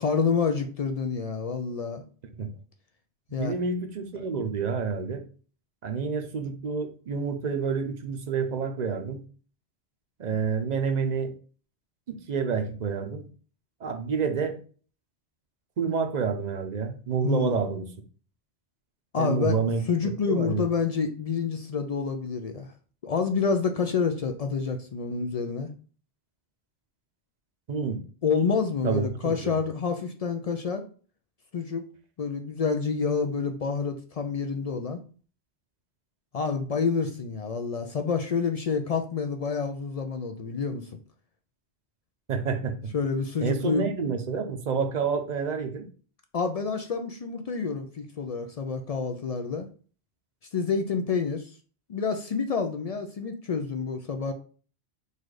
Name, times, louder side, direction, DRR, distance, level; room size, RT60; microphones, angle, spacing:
voice 1, 0.0-2.0 3.3-3.5 17.2-17.6 19.1-19.6 19.9-22.7 23.0-25.7 28.2-30.8 31.5-31.9 32.2-35.0 36.3-40.9 42.9-43.9 46.3-49.7 50.5-51.5 51.9-54.3, left 5 dB, 60° left, 7 dB, 0.4 m, -28 dB
voice 2, 3.4-5.2 5.8-9.2 10.2-11.3 12.1-13.2 13.8-14.6 15.8-17.9 19.2-19.8 20.3-20.6 27.7-28.0 28.8-29.6 42.3-42.9 43.4-45.9, right 5 dB, 50° right, 6 dB, 0.6 m, -28 dB
4.1 x 2.5 x 4.7 m, 0.40 s
omnidirectional pair, 1.1 m